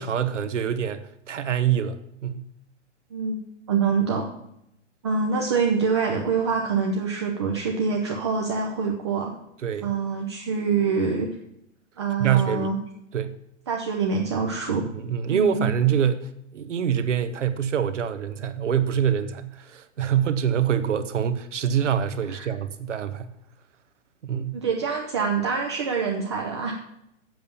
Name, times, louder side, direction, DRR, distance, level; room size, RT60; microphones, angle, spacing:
voice 1, 0.0-2.5 9.6-9.9 12.2-12.7 13.1-13.4 14.9-23.3 24.2-24.6, right 9 dB, 75° right, 1.2 m, -25 dB
voice 2, 3.7-4.3 5.0-9.4 9.8-11.3 12.0-12.8 13.7-14.8 15.3-15.6 22.3-22.5 24.5-26.7, right 5 dB, 25° right, 0.7 m, -25 dB
7.7 x 7.2 x 6.8 m
hypercardioid pair, 170°, 36 cm